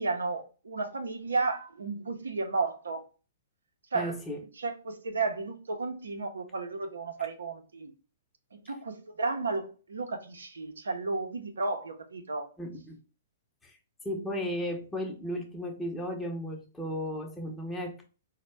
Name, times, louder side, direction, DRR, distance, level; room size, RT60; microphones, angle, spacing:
voice 1, 0.0-3.0 3.9-4.2 4.6-7.9 8.5-12.5, right 3 dB, 85° right, 0.6 m, -33 dB
voice 2, 3.9-4.4 12.6-13.0 13.6-13.8 14.0-18.0, equal, 10° left, 0.7 m, -35 dB
4.0 x 2.1 x 3.2 m
hypercardioid pair, 125°, 0 cm